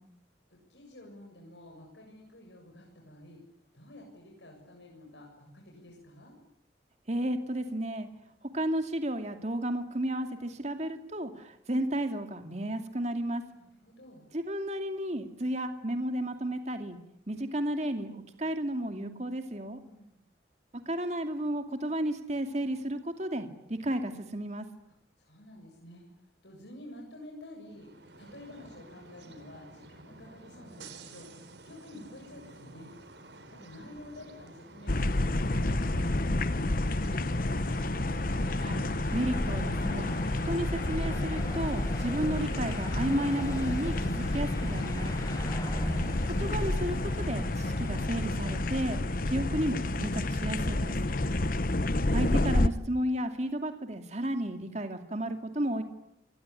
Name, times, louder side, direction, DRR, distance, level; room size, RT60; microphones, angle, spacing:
voice 1, 0.5-3.4 3.7-6.4 13.5-14.3 19.8-20.2 24.9-32.9 33.5-37.9, left 1 dB, 75° left, 0 dB, 7.5 m, -50 dB
voice 2, 7.1-8.1 8.4-13.4 14.3-17.0 17.3-19.8 20.9-24.7 38.6-38.8 39.1-40.1 40.4-45.2 46.4-49.0 49.3-51.0 52.1-55.8, right 1 dB, 40° right, 7 dB, 2.5 m, -32 dB
sound 1, 27.6-45.7, right 2 dB, 75° right, 4.1 m, -51 dB
sound 2, 34.9-52.7, left 2 dB, 50° left, 1.1 m, -30 dB
sound 3, 39.0-49.0, equal, 20° left, 5.9 m, -41 dB
27.0 x 22.0 x 9.9 m, 0.80 s
head